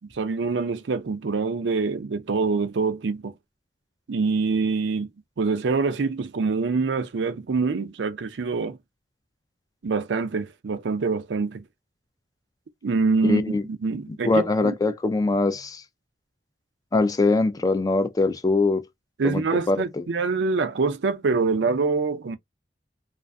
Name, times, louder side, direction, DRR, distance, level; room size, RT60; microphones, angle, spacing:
voice 1, 0.1-3.3 4.1-5.1 5.4-8.8 9.8-11.6 12.8-14.7 19.2-22.4, right 4 dB, 80° right, 0.5 m, -25 dB
voice 2, 13.2-13.7 14.1-15.8 16.9-18.8 19.2-20.1, left 3 dB, 20° left, 0.4 m, -23 dB
2.4 x 2.4 x 2.2 m
head